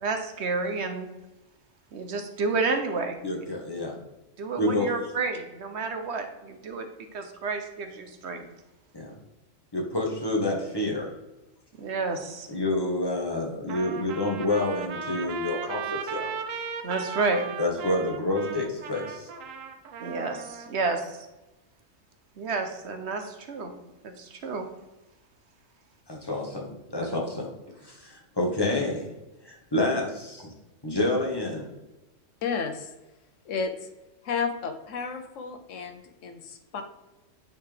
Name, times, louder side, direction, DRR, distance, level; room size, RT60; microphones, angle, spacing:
voice 1, 0.0-1.1 1.9-3.2 4.4-6.9 7.1-8.5 11.8-12.5 16.8-17.4 20.0-21.2 22.4-23.7 24.0-24.7 27.0-27.2, right 3 dB, 65° right, 6 dB, 1.0 m, -30 dB
voice 2, 3.2-4.0 4.6-4.9 8.9-9.1 9.7-11.1 12.5-16.3 17.6-19.3 26.1-27.5 27.8-29.1 29.4-30.5 30.8-31.7, left 2 dB, 20° left, -1 dB, 1.3 m, -28 dB
Trumpet, 13.7-20.7, right 6 dB, 80° right, 1.1 m, -36 dB
voice 3, 32.4-32.9 33.4-33.9 34.2-36.8, left 5 dB, 75° left, 6 dB, 1.1 m, -32 dB
9.2 x 4.4 x 3.4 m, 1.0 s
omnidirectional pair, 1.3 m